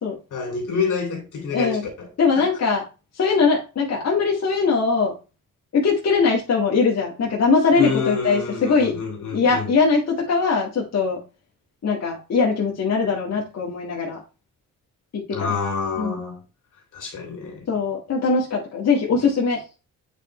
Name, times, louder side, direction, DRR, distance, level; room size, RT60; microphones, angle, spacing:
voice 1, 0.3-2.1 2.3-2.5 7.8-9.7 15.3-16.4 16.9-17.7, left 5 dB, 70° left, 3.2 m, -27 dB
voice 2, 1.5-1.9 2.2-2.8 3.2-5.1 5.7-8.9 9.3-11.2 11.8-14.2 15.1-15.6 16.0-16.2 17.7-19.6, left 4 dB, 55° left, 1.9 m, -21 dB
8.2 x 4.4 x 3.2 m
cardioid pair, 90°, 32 cm